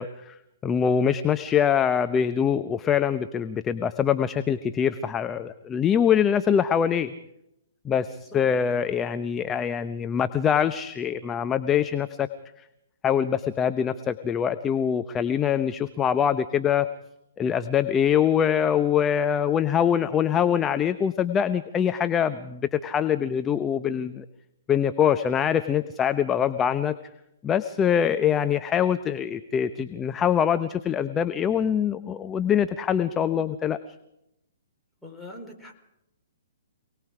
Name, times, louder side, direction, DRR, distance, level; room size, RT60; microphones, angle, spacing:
voice 1, 0.0-7.1 7.8-12.3 13.0-16.9 17.4-24.2 24.7-26.9 27.4-33.8, left 8 dB, 20° left, 11 dB, 0.8 m, -24 dB
voice 2, 8.1-8.4 35.0-35.7, left 1 dB, ahead, -1 dB, 4.3 m, -43 dB
27.0 x 19.5 x 4.9 m, 0.83 s
hypercardioid pair, 130°, 0 cm